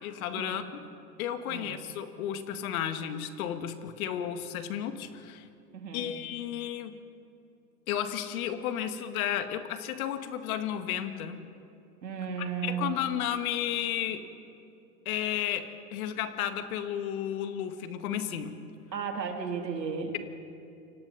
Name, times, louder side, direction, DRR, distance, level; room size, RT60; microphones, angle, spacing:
voice 1, 0.0-0.8 1.2-5.5 5.9-7.0 7.9-11.5 12.4-14.2 15.1-18.6, left 10 dB, 60° left, 8 dB, 2.0 m, -33 dB
voice 2, 5.7-6.1 12.0-13.0 18.9-20.2, right 6 dB, 90° right, 3 dB, 3.2 m, -34 dB
29.0 x 25.0 x 4.2 m, 2.6 s
hypercardioid pair, 105°, 48 cm